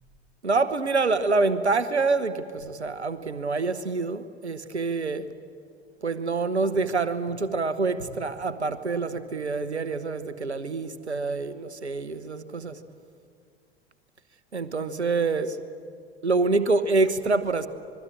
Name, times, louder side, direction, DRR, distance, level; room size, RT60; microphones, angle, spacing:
voice 1, 0.4-5.3 6.0-12.8 14.5-15.6 16.2-17.7, right 3 dB, 85° right, 1.2 m, -26 dB
26.5 x 22.0 x 8.8 m
figure-of-eight pair, 75°, 33 cm